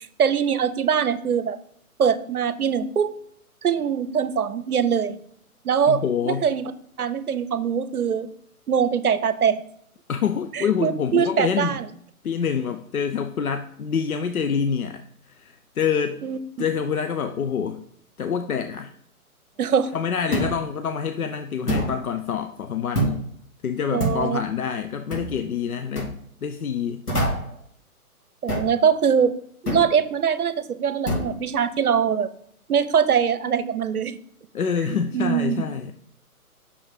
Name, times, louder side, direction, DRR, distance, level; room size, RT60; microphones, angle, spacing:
voice 1, 0.2-1.6 2.0-3.1 3.6-5.2 5.6-6.7 7.0-8.3 8.7-9.6 10.5-11.9 16.2-16.4 19.6-19.9 23.9-24.4 28.4-29.3 29.6-32.3 32.7-34.2 35.1-35.7, right 7 dB, 75° right, 14 dB, 0.7 m, -22 dB
voice 2, 5.9-6.5 10.1-11.8 12.2-16.2 16.6-17.8 18.2-18.9 19.9-23.3 23.6-27.0 34.5-35.9, left 7 dB, 70° left, 8 dB, 0.7 m, -26 dB
sound 1, 20.3-20.6 21.7-22.0 22.9-23.2 24.0-24.3 25.1-25.3 26.0-26.1 27.1-27.5 28.5-28.8 29.7-29.9 31.1-31.3, equal, 85° left, 2.7 m, -25 dB
6.4 x 5.6 x 3.6 m, 0.68 s
figure-of-eight pair, 135°, 45 cm